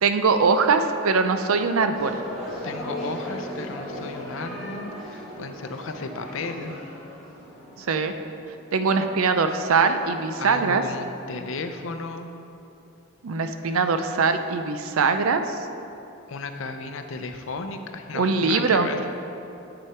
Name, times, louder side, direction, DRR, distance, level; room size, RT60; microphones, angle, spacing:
voice 1, 0.0-2.2 7.8-8.1 8.7-10.8 13.2-15.6 18.1-18.9, right 4 dB, 90° right, 8 dB, 0.5 m, -22 dB
sound 1, 1.9-8.5, equal, 5° right, 1.9 m, -37 dB
voice 2, 2.6-6.7 10.4-12.3 16.3-19.0, left 3 dB, 70° left, 7 dB, 0.6 m, -34 dB
7.9 x 6.4 x 4.4 m, 2.9 s
head